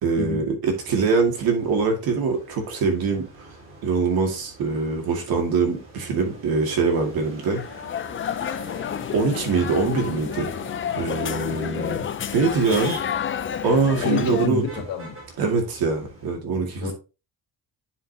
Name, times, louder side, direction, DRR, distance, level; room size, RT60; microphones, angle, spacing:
voice 1, 0.0-3.5 3.8-7.6 9.1-10.5 10.9-12.0 12.3-13.0 13.6-14.6 15.4-16.9, right 4 dB, 75° right, 2.3 m, -23 dB
Motor vehicle (road), 0.7-16.3, right 2 dB, 35° right, 4.3 m, -44 dB
sound 1, 7.5-14.5, left 8 dB, 35° left, 0.5 m, -30 dB
voice 2, 14.0-15.2 16.8-16.9, left 5 dB, 70° left, 2.3 m, -27 dB
9.8 x 5.1 x 2.8 m
cardioid pair, 130°, 36 cm